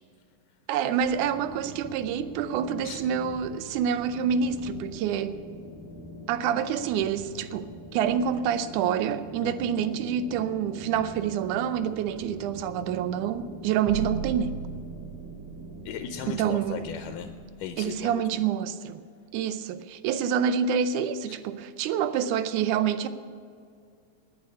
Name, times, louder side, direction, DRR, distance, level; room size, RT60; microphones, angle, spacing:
voice 1, 0.7-5.4 6.3-14.6 16.4-16.9 17.8-19.0 19.3-23.1, right 8 dB, 80° right, 1.9 m, -27 dB
sound 1, 1.0-17.4, equal, 25° right, 0.4 m, -44 dB
sound 2, 13.9-18.1, right 5 dB, 55° right, 1.9 m, -38 dB
voice 2, 15.9-17.3 17.6-18.5 21.3-21.4, left 8 dB, 80° left, 2.1 m, -37 dB
10.5 x 9.9 x 9.6 m
omnidirectional pair, 4.0 m